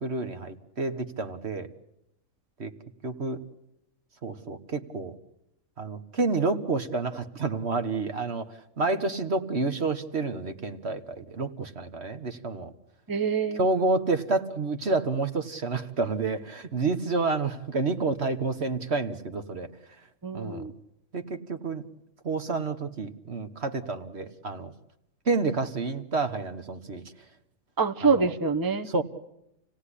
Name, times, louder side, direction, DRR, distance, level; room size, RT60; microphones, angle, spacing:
voice 1, 0.0-1.7 2.6-2.7 3.0-3.4 4.2-5.1 5.8-8.4 8.8-12.7 13.6-19.7 20.3-20.7 21.1-21.8 22.2-24.7 25.3-27.0 28.0-28.3 28.9-29.0, right 3 dB, 50° right, 8 dB, 1.6 m, -29 dB
voice 2, 13.1-13.7 20.2-20.7 27.8-28.9, right 5 dB, 15° right, 7 dB, 1.0 m, -25 dB
29.0 x 17.5 x 10.0 m, 0.83 s
omnidirectional pair, 1.4 m